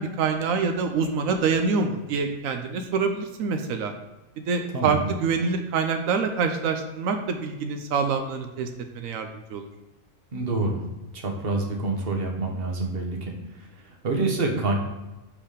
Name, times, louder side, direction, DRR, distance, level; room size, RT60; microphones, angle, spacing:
voice 1, 0.0-3.9 4.4-8.7 8.9-9.7, right 5 dB, 90° right, 5 dB, 1.1 m, -26 dB
voice 2, 4.7-5.1 10.3-10.8 11.1-14.7, right 3 dB, 50° right, 2 dB, 1.3 m, -27 dB
5.6 x 4.9 x 5.0 m, 1.1 s
omnidirectional pair, 1.4 m